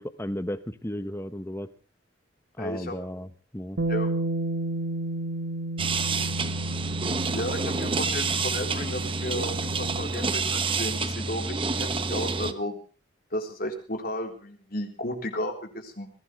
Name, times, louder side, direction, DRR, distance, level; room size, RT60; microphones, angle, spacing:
voice 1, 0.0-1.7 2.6-3.8, left 1 dB, 15° left, 12 dB, 1.0 m, -34 dB
voice 2, 2.6-3.0 3.9-4.1 7.3-12.8 13.3-16.1, left 1 dB, 50° left, 4 dB, 3.8 m, -33 dB
Bass guitar, 3.8-10.0, right 2 dB, 65° right, 1.6 m, -32 dB
sound 1, 5.8-12.5, right 4 dB, 25° right, 1.0 m, -28 dB
21.5 x 16.5 x 3.3 m, 0.38 s
head